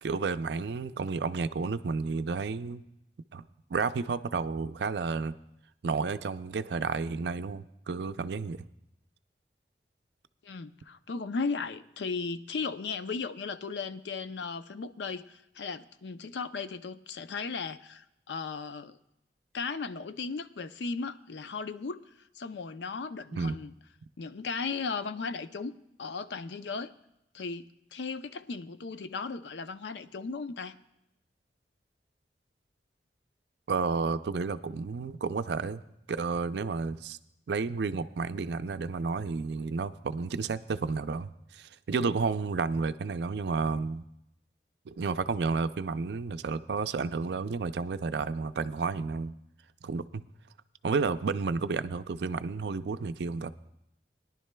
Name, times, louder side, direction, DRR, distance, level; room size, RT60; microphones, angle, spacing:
voice 1, 0.0-2.8 3.3-3.4 3.7-5.4 5.8-8.7 23.3-23.5 33.7-35.8 36.1-37.2 37.5-44.0 44.9-49.3 49.8-50.2 50.8-53.5, right 4 dB, 75° right, 12 dB, 0.4 m, -31 dB
voice 2, 10.4-19.0 19.5-23.7 24.2-25.7 26.0-26.9 27.3-30.8, left 4 dB, 85° left, 11 dB, 0.5 m, -36 dB
21.5 x 11.0 x 2.2 m, 0.84 s
head